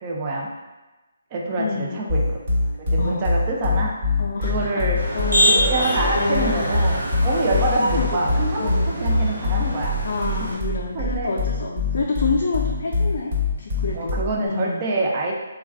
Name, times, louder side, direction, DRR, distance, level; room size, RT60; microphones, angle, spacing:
voice 1, 0.0-0.5 1.3-2.2 2.9-3.9 4.4-5.0 5.4-10.1 10.9-11.4 13.9-15.3, right 2 dB, 30° right, -2 dB, 0.5 m, -25 dB
voice 2, 1.6-2.0 3.0-3.3 4.2-4.9 5.1-6.7 7.8-8.2 8.6-8.9 10.0-14.8, left 4 dB, 60° left, -1 dB, 0.3 m, -28 dB
sound 1, 2.1-14.5, left 3 dB, 50° right, 1.4 m, -24 dB
Motor vehicle (road), 5.0-10.5, equal, 85° right, 1.0 m, -25 dB
3.1 x 2.3 x 2.3 m, 1.1 s
figure-of-eight pair, 150°, 0 cm